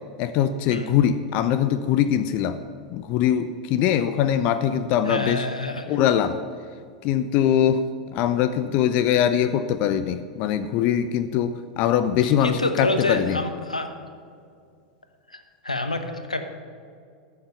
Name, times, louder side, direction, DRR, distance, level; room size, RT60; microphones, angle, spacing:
voice 1, 0.2-2.6 2.9-5.5 5.9-6.4 7.0-7.8 8.1-13.4, left 9 dB, 40° left, 12 dB, 0.5 m, -22 dB
voice 2, 5.0-6.0 12.2-13.9 15.3-16.4, left 2 dB, 85° left, 8 dB, 0.9 m, -28 dB
14.0 x 7.2 x 5.7 m, 2.3 s
figure-of-eight pair, 90°, 4 cm